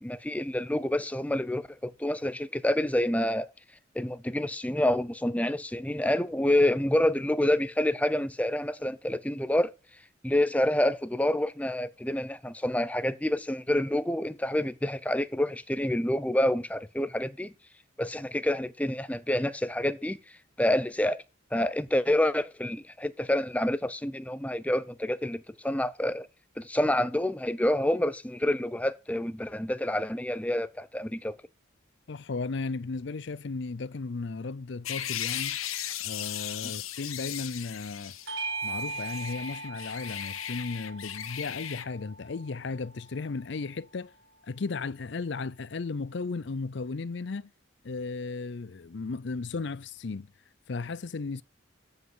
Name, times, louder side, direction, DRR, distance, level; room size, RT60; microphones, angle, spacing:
voice 1, 0.0-3.5 3.9-9.7 10.2-17.5 18.0-20.2 20.6-21.2 21.5-26.3 26.6-31.4, left 1 dB, 5° left, 0.7 m, -28 dB
voice 2, 32.1-35.6 36.0-38.1 38.6-44.1 44.5-47.5 47.8-50.3 50.7-51.4, left 4 dB, 60° left, 0.5 m, -35 dB
sound 1, 34.9-38.3 38.6-41.9, left 11 dB, 90° left, 1.1 m, -37 dB
Bell / Doorbell, 38.3-43.1, right 3 dB, 70° right, 2.0 m, -39 dB
14.0 x 5.3 x 5.5 m
head